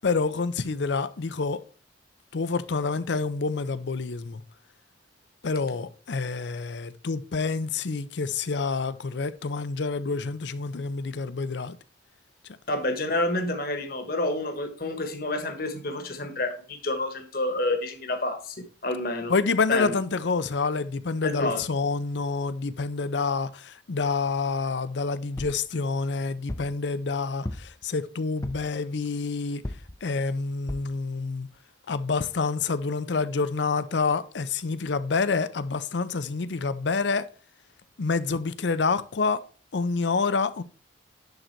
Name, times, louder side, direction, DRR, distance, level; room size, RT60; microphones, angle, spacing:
voice 1, 0.0-1.6 2.3-4.4 5.4-11.8 19.3-29.6 30.0-31.5 31.9-37.2 38.0-39.4 39.7-40.6, left 4 dB, 70° left, 0.5 m, -27 dB
voice 2, 12.7-18.6 18.8-19.3 19.7-19.9 21.2-21.6, left 2 dB, 50° left, 1.2 m, -29 dB
sound 1, 25.4-25.7 26.5-26.8 27.4-27.9 28.4-28.8 29.6-30.0 30.7-31.0 31.5-31.6 31.9-32.0, left 1 dB, 15° left, 0.5 m, -36 dB
10.5 x 4.0 x 4.5 m
head